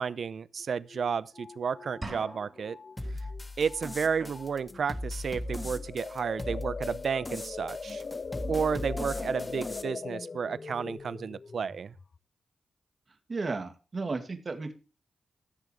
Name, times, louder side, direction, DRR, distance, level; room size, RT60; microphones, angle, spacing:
voice 1, 0.0-2.8 3.6-8.0 8.5-11.9, right 6 dB, 70° right, 0.6 m, -32 dB
sound 1, 0.6-0.7 0.9-3.4 3.7-4.0 4.3-4.8 5.3-12.2, left 4 dB, 50° left, 0.4 m, -41 dB
sound 2, 2.0-3.0, right 2 dB, 30° right, 3.8 m, -42 dB
sound 3, 3.0-9.8, left 2 dB, 20° left, 1.3 m, -39 dB
voice 2, 13.3-14.7, right 3 dB, 50° right, 2.3 m, -34 dB
16.0 x 6.9 x 3.3 m
cardioid pair, 50°, 0 cm